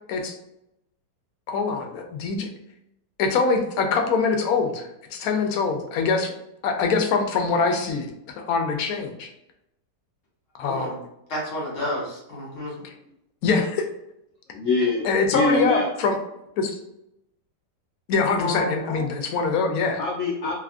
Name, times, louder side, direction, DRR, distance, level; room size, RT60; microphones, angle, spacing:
voice 1, 1.5-2.5 3.2-6.3 6.6-8.1 8.5-9.3 10.6-11.0 12.8-12.9 13.4-13.9 15.0-16.2 16.6-16.8 18.1-20.0, left 4 dB, 70° left, 4 dB, 0.9 m, -23 dB
voice 2, 10.6-10.9 11.3-12.8 18.4-19.1, left 1 dB, 50° left, -4 dB, 1.4 m, -30 dB
voice 3, 14.5-15.9 20.0-20.5, left 3 dB, 90° left, -2 dB, 0.6 m, -24 dB
3.4 x 2.4 x 2.4 m, 0.82 s
omnidirectional pair, 1.8 m